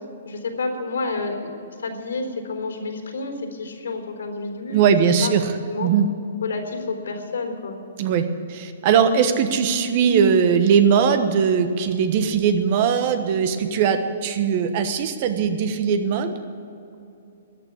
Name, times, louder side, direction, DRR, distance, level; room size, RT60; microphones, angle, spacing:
voice 1, 0.2-1.5 1.8-4.8 5.2-5.3 5.7-5.9 6.4-7.8, left 3 dB, 85° left, 4 dB, 3.9 m, -29 dB
voice 2, 4.7-5.5 5.8-6.1 8.0-16.4, right 7 dB, 45° right, 9 dB, 1.2 m, -20 dB
14.0 x 9.2 x 9.7 m, 2.7 s
hypercardioid pair, 145°, 0 cm